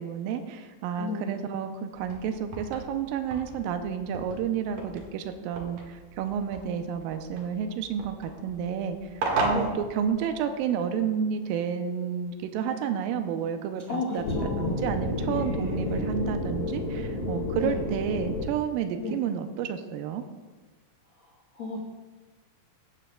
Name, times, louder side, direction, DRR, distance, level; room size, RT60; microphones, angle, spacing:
voice 1, 0.0-20.2, right 7 dB, 85° right, 6 dB, 2.4 m, -31 dB
voice 2, 1.0-1.4 9.5-9.8 13.9-14.8 15.3-16.1 17.5-17.8 19.0-19.2 21.5-21.8, left 3 dB, 85° left, -3 dB, 1.0 m, -33 dB
sound 1, 1.9-10.6, right 2 dB, 65° right, 3.1 m, -36 dB
sound 2, 14.2-18.5, left 1 dB, 50° left, 1.9 m, -31 dB
17.0 x 9.9 x 2.3 m, 1.3 s
omnidirectional pair, 4.2 m